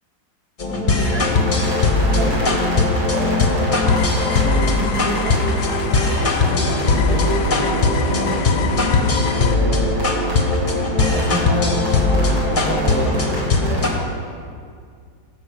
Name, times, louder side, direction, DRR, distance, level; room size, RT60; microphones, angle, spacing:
sound 1, 0.6-13.9, left 3 dB, 30° left, 1.0 m, -19 dB
voice 1, 0.7-1.5 2.1-2.6 3.1-3.7 4.2-5.4 6.5-8.4 9.3-10.2 10.8-11.8 12.2-14.0, equal, 10° right, -1 dB, 1.8 m, -29 dB
sound 2, 1.3-13.9, equal, 70° right, 5.1 m, -30 dB
sound 3, 3.9-9.5, left 10 dB, 85° left, 1.4 m, -30 dB
14.5 x 5.7 x 8.7 m, 2.2 s
omnidirectional pair, 2.2 m